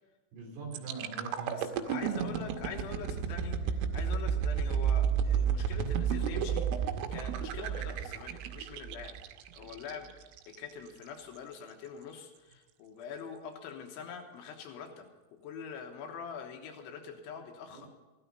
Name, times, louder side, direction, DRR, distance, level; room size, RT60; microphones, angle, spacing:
voice 1, 0.3-2.4 17.7-17.8, right 4 dB, 55° right, 0 dB, 5.2 m, -43 dB
sound 1, 0.7-10.6 11.0-11.2, right 7 dB, 90° right, 3.5 m, -32 dB
voice 2, 1.5-9.2 9.5-10.1 10.5-15.1 15.4-17.9, left 6 dB, 75° left, 3 dB, 3.5 m, -44 dB
15.5 x 12.0 x 5.4 m, 1.2 s
omnidirectional pair, 5.8 m